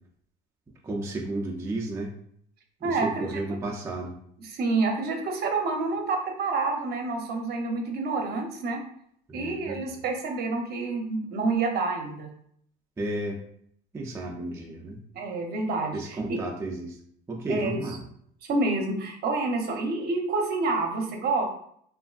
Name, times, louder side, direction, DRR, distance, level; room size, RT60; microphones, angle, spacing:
voice 1, 0.8-2.1 2.8-4.1 9.3-10.0 13.0-13.4 13.9-15.0 15.9-17.0 17.3-18.0, right 2 dB, 10° right, -1 dB, 0.4 m, -33 dB
voice 2, 2.8-3.6 4.4-8.8 9.3-12.3 15.1-16.4 17.5-17.8 18.5-21.5, right 3 dB, 50° right, 3 dB, 0.6 m, -28 dB
3.0 x 2.5 x 2.4 m, 0.65 s
cardioid pair, 120°, 21 cm